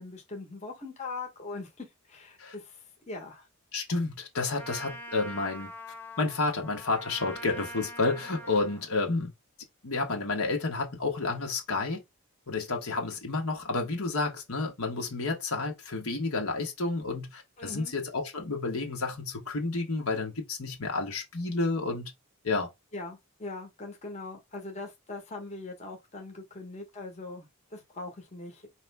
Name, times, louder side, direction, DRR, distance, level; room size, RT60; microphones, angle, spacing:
voice 1, 0.0-3.5 17.6-17.9 22.9-28.7, left 3 dB, 30° left, 1.1 m, -41 dB
voice 2, 3.7-5.7 6.2-9.3 9.8-12.0 12.5-22.1 22.4-22.7, left 3 dB, 75° left, 1.4 m, -30 dB
Trumpet, 4.6-8.9, equal, 10° left, 0.6 m, -44 dB
5.1 x 3.0 x 3.4 m
head